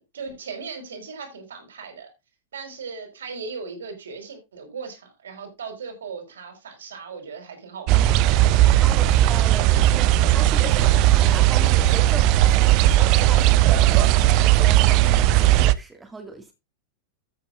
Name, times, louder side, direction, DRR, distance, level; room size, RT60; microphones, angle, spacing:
voice 1, 0.0-2.1 2.5-8.2, right 5 dB, 65° right, 4.7 m, -37 dB
sound 1, 7.9-15.7, right 14 dB, 40° right, 0.7 m, -17 dB
voice 2, 8.4-16.5, right 3 dB, 10° right, 2.1 m, -38 dB
14.0 x 8.3 x 2.5 m
figure-of-eight pair, 90°, 0 cm